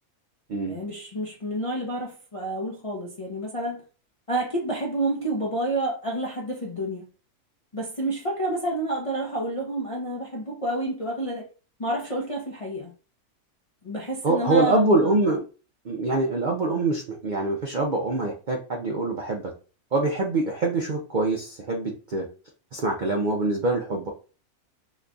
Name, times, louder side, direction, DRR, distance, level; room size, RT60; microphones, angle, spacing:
voice 1, 0.7-3.8 4.3-7.1 7.7-11.5 11.8-12.9 13.8-15.2, right 1 dB, 45° left, 0.4 m, -29 dB
voice 2, 14.2-15.4 15.8-19.5 19.9-22.3 22.7-24.1, right 2 dB, 60° right, 0.5 m, -24 dB
3.0 x 2.3 x 3.7 m
omnidirectional pair, 1.6 m